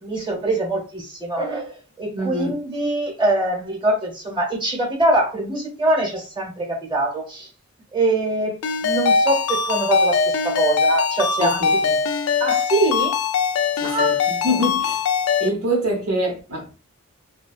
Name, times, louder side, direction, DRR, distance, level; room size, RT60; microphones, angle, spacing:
voice 1, 0.0-7.5 7.9-11.8 12.4-13.2 13.8-14.2 14.5-14.8, right 2 dB, 20° right, 0.9 m, -23 dB
voice 2, 2.1-2.6 11.4-12.0 13.8-15.1 15.4-16.7, equal, 80° right, 0.9 m, -25 dB
Ringtone, 8.6-15.5, left 5 dB, 85° left, 0.4 m, -21 dB
2.7 x 2.2 x 2.3 m
head